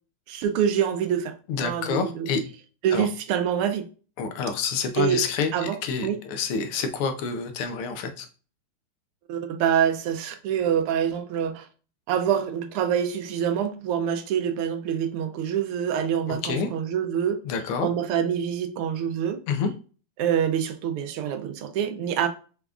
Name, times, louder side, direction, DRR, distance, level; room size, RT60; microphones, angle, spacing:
voice 1, 0.3-1.3 1.6-2.3 2.8-3.9 5.0-5.2 5.5-5.7 6.0-6.2 9.3-11.7 12.1-17.4 17.8-19.4 20.2-22.3, right 9 dB, 85° right, 1.6 m, -25 dB
voice 2, 1.5-2.4 2.9-3.1 4.2-8.3 16.3-16.7 17.4-17.9 19.5-19.7, left 5 dB, 80° left, 1.6 m, -28 dB
5.0 x 3.5 x 2.3 m
omnidirectional pair, 2.4 m